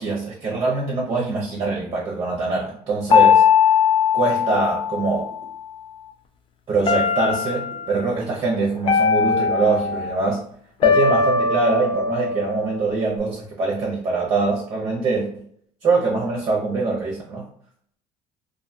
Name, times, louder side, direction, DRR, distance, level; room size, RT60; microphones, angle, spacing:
voice 1, 0.0-3.4 4.1-5.4 6.7-10.4 10.8-15.4 15.8-17.4, right 3 dB, 40° right, -2 dB, 0.7 m, -23 dB
sound 1, 3.1-5.5 6.9-7.9 8.9-10.2 10.8-13.2, left 6 dB, 45° left, 0.4 m, -19 dB
2.6 x 2.2 x 2.7 m, 0.63 s
cardioid pair, 110°, 12 cm